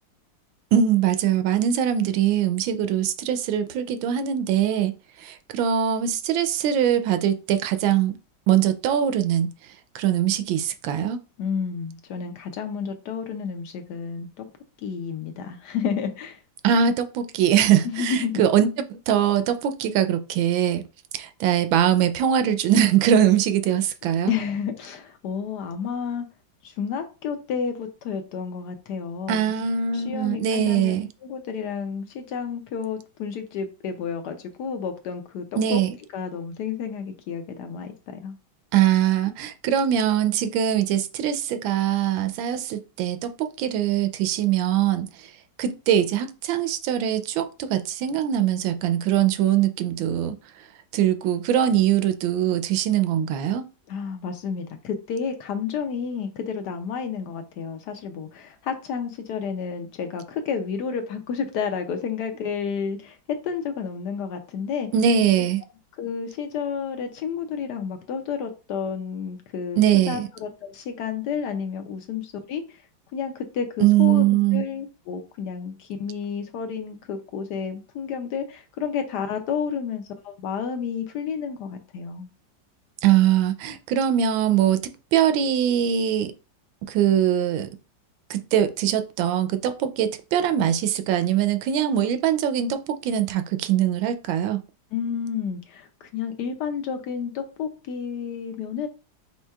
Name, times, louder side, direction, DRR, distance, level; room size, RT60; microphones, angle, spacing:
voice 1, 0.7-4.9 5.2-8.1 8.5-9.5 9.9-11.2 16.6-20.8 21.1-24.3 29.3-31.1 35.6-35.9 38.7-45.3 45.6-50.4 50.9-53.6 64.9-65.6 69.8-70.3 73.8-74.6 83.0-86.3 86.9-87.7 88.3-94.6, right 10 dB, 85° right, 1.3 m, -22 dB
voice 2, 11.4-14.4 14.8-16.4 17.8-18.4 24.3-26.2 26.6-29.5 29.9-30.9 31.2-35.8 36.1-38.3 53.9-63.2 63.4-64.9 66.0-72.6 73.1-82.3 94.9-98.9, left 6 dB, 75° left, 1.0 m, -31 dB
4.5 x 4.3 x 2.3 m
omnidirectional pair, 2.1 m